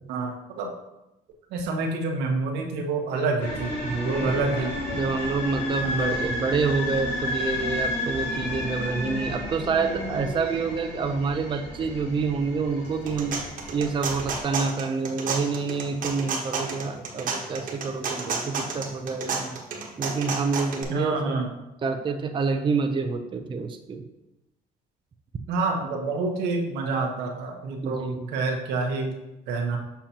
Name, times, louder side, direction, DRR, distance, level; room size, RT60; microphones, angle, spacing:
voice 1, 0.1-0.7 1.5-3.7 4.0-4.7 5.8-6.1 20.9-21.5 25.5-29.1 29.5-29.8, right 3 dB, 90° right, 2 dB, 1.1 m, -27 dB
sound 1, 3.4-14.4, left 1 dB, 80° left, 2.3 m, -32 dB
voice 2, 3.8-13.4 13.7-19.6 20.0-21.4 21.8-24.0 27.8-28.3, right 4 dB, 30° right, 5 dB, 0.6 m, -28 dB
sound 2, 12.8-20.8, right 4 dB, 55° right, 1.3 m, -31 dB
7.1 x 5.7 x 2.9 m, 0.94 s
cardioid pair, 110°, 17 cm